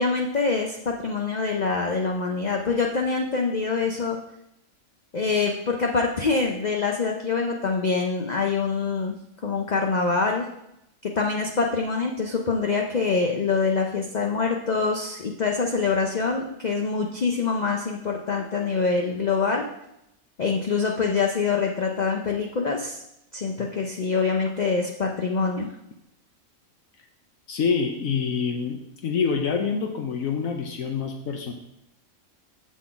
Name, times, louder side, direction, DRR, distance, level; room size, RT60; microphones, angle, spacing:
voice 1, 0.0-4.2 5.1-9.1 9.4-10.5 11.0-19.6 20.4-23.0 23.3-25.7, left 4 dB, 45° left, 1 dB, 0.6 m, -25 dB
voice 2, 27.5-31.5, left 5 dB, 75° left, 2 dB, 1.1 m, -26 dB
7.0 x 6.2 x 3.8 m, 0.82 s
omnidirectional pair, 1.4 m